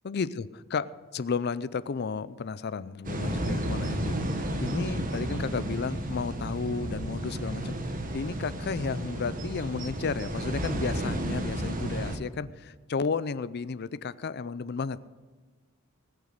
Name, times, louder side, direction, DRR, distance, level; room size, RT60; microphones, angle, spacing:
voice 1, 0.0-7.8 8.1-15.0, left 5 dB, 50° left, 17 dB, 0.5 m, -33 dB
sound 1, 3.0-12.2, right 1 dB, 40° right, 1.3 m, -32 dB
20.0 x 6.9 x 6.6 m, 1.3 s
head